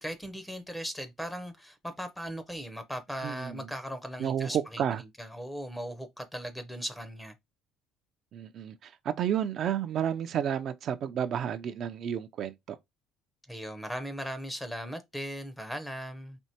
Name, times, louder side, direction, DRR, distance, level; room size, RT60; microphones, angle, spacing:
voice 1, 0.0-7.3 13.5-16.4, equal, 5° left, 0.5 m, -38 dB
voice 2, 3.2-3.7 4.2-5.0 8.3-12.8, right 9 dB, 50° right, 0.4 m, -31 dB
4.3 x 2.9 x 2.8 m
cardioid pair, 120°, 0 cm